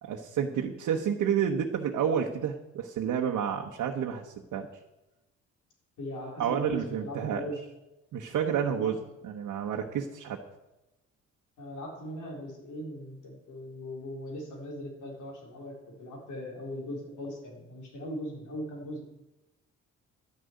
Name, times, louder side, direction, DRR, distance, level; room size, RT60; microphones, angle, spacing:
voice 1, 0.0-4.7 6.4-7.5 8.1-9.0 9.2-10.4, right 8 dB, 80° right, 1 dB, 1.2 m, -30 dB
voice 2, 6.0-7.6 8.8-8.9 11.6-19.0, equal, 80° left, 0 dB, 4.2 m, -39 dB
12.0 x 6.5 x 9.4 m, 1.0 s
cardioid pair, 90°, 30 cm